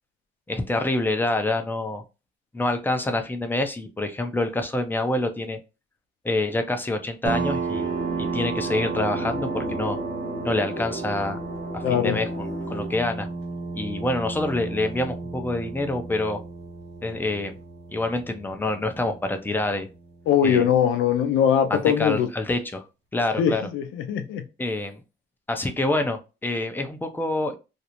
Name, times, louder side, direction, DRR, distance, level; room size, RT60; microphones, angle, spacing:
voice 1, 0.5-2.0 2.5-5.6 6.2-7.9 8.2-10.0 10.4-11.4 11.7-13.3 13.7-16.4 17.0-17.5 17.9-19.9 20.4-20.7 21.7-22.8 23.1-23.6 24.6-25.0 25.5-27.6, left 2 dB, 10° left, 6 dB, 0.5 m, -26 dB
sound 1, 7.2-20.5, right 4 dB, 65° right, 1.0 m, -33 dB
sound 2, 7.7-12.9, left 1 dB, 50° left, 0.8 m, -35 dB
voice 2, 11.8-12.2 20.3-22.3 23.4-24.4, left 8 dB, 85° left, 8 dB, 0.5 m, -21 dB
2.5 x 2.0 x 2.8 m, 0.29 s
cardioid pair, 90°, 20 cm